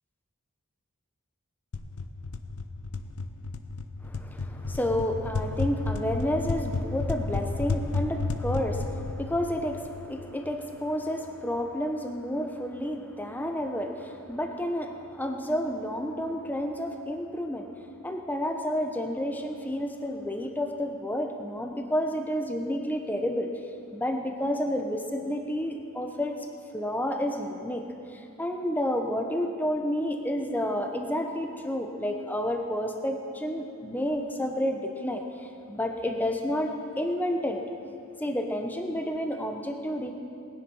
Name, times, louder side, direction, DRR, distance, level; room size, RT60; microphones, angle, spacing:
sound 1, 1.7-10.4, left 3 dB, 75° left, 0.7 m, -32 dB
voice 1, 4.0-17.7 18.0-23.5 23.9-26.4 26.7-27.8 28.1-35.2 35.7-37.6 38.2-40.1, equal, 10° left, 4 dB, 0.9 m, -30 dB
19.5 x 10.5 x 5.5 m, 2.6 s
head